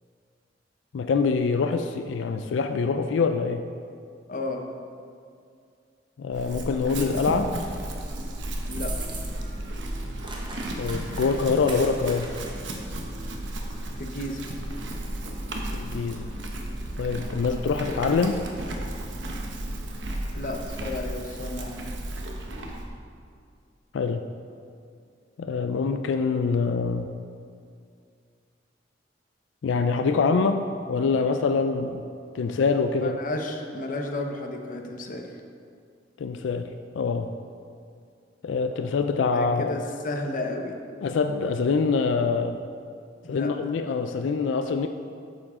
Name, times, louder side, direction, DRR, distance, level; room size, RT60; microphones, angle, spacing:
voice 1, 0.9-3.6 6.2-7.6 10.8-12.3 15.7-16.3 17.0-18.4 23.9-24.2 25.4-27.1 29.6-32.0 32.3-33.2 36.2-36.7 36.9-37.3 38.4-39.8 41.0-42.6 43.3-44.9, left 4 dB, 85° left, 7 dB, 0.4 m, -25 dB
voice 2, 4.3-4.7 8.7-8.9 14.0-14.4 20.3-21.8 33.0-35.3 39.3-40.8 43.2-43.5, left 2 dB, 45° left, 3 dB, 0.8 m, -32 dB
Chewing mastication / Livestock farm animals working animals, 6.3-22.9, right 1 dB, 80° right, 0.9 m, -34 dB
sound 1, 8.6-9.6 9.8-12.8, right 3 dB, 25° right, 0.9 m, -41 dB
8.8 x 7.2 x 3.6 m, 2.3 s
head